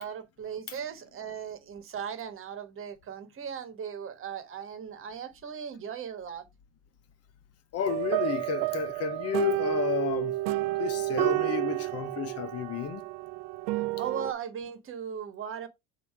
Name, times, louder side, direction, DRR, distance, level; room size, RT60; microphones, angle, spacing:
voice 1, 0.0-6.5 13.7-15.7, right 7 dB, 45° right, 1.3 m, -38 dB
voice 2, 7.7-10.4 10.8-13.0, left 8 dB, 55° left, 0.9 m, -31 dB
sound 1, 7.8-14.3, right 19 dB, 85° right, 0.5 m, -30 dB
6.9 x 2.9 x 4.7 m
cardioid pair, 105°, 30 cm